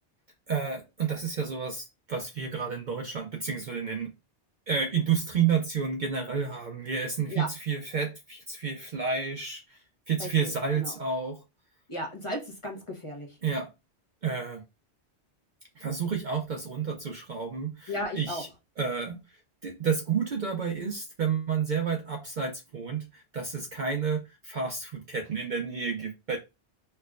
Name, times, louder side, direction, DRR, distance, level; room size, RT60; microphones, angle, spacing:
voice 1, 0.5-4.1 4.7-11.4 13.4-13.7 14.2-14.6 15.8-18.5 18.8-19.2 19.6-26.4, right 6 dB, 55° right, 0.6 m, -30 dB
voice 2, 10.2-10.5 10.8-10.9 11.9-13.3 17.9-18.4, left 1 dB, 30° left, 0.7 m, -35 dB
4.4 x 2.1 x 2.3 m
omnidirectional pair, 1.1 m